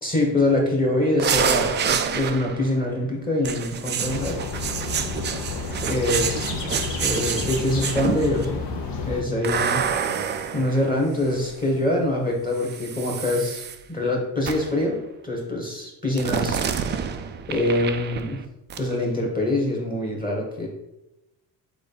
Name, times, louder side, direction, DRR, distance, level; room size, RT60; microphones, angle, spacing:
voice 1, 0.0-4.4 5.9-6.5 7.0-8.6 9.0-9.8 10.5-16.6 17.5-18.4 18.8-20.7, left 1 dB, 15° left, -1 dB, 1.4 m, -24 dB
sound 1, 1.2-2.7 3.4-8.4 9.4-11.6 12.6-13.8 14.4-14.8 16.2-18.4 18.7-18.9, right 7 dB, 25° right, 0.3 m, -28 dB
sound 2, 4.0-9.2, left 4 dB, 60° left, 1.0 m, -31 dB
3.8 x 3.4 x 3.9 m, 0.90 s
hypercardioid pair, 60°, 50 cm